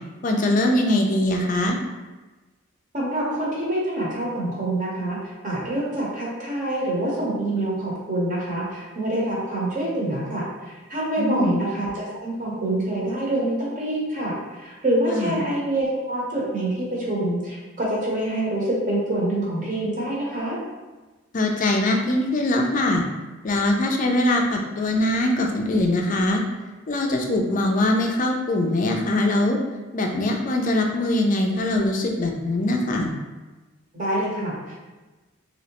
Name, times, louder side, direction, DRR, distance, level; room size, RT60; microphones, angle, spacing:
voice 1, 0.2-1.8 11.2-11.5 15.1-15.4 21.3-23.0 23.4-26.4 26.9-29.6 29.9-33.1, left 1 dB, 40° left, 2 dB, 0.4 m, -22 dB
voice 2, 2.9-20.6 33.9-34.8, right 1 dB, 40° right, -5 dB, 0.9 m, -26 dB
3.0 x 2.8 x 2.9 m, 1.2 s
head